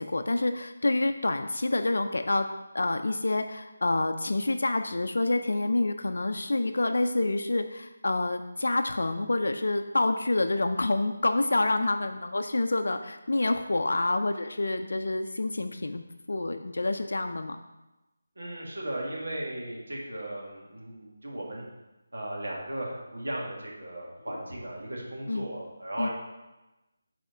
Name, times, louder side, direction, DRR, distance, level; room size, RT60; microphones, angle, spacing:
voice 1, 0.0-2.5 2.7-17.6 24.3-24.4 25.3-25.5 26.0-26.1, left 2 dB, 80° left, 7 dB, 0.4 m, -27 dB
voice 2, 18.4-21.6 22.1-26.1, right 1 dB, 90° right, -3 dB, 1.8 m, -36 dB
5.4 x 4.2 x 4.9 m, 1.0 s
figure-of-eight pair, 175°, 0 cm